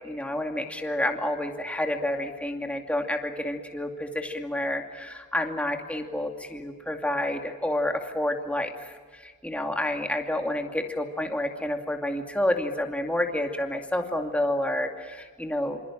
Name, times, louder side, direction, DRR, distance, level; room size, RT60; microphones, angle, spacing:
voice 1, 0.0-15.8, left 1 dB, 5° left, 3 dB, 2.5 m, -29 dB
27.0 x 27.0 x 7.4 m, 1.5 s
head